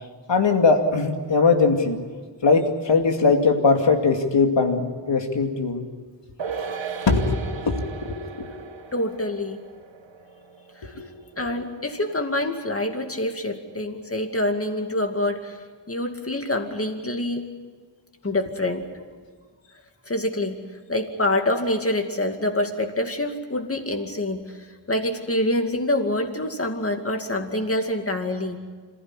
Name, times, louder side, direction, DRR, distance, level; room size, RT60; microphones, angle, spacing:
voice 1, 0.3-2.0 2.4-5.9 7.1-8.7 11.0-11.1, left 4 dB, 75° left, 4 dB, 2.5 m, -20 dB
sound 1, 6.4-13.1 13.3-13.4, right 6 dB, 90° right, 1.6 m, -38 dB
voice 2, 8.9-9.6 10.8-10.9 11.4-15.6 15.9-17.5 18.2-18.9 20.1-20.6 20.9-28.6, left 1 dB, 30° left, 4 dB, 2.4 m, -26 dB
27.0 x 15.5 x 10.0 m, 1.5 s
wide cardioid pair, 110°, 44 cm